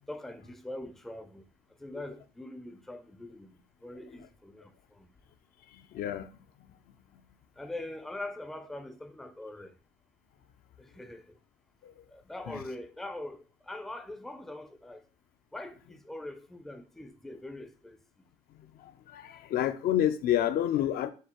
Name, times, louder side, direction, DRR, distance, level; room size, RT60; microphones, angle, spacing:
voice 1, 0.1-1.5 1.8-5.1 7.6-9.8 10.8-11.4 12.1-15.0 15.5-18.0, left 1 dB, ahead, 0.4 m, -43 dB
voice 2, 5.9-6.3 11.8-11.9 19.1-21.1, left 11 dB, 65° left, 0.4 m, -28 dB
6.5 x 2.4 x 2.9 m
cardioid pair, 110°, 17 cm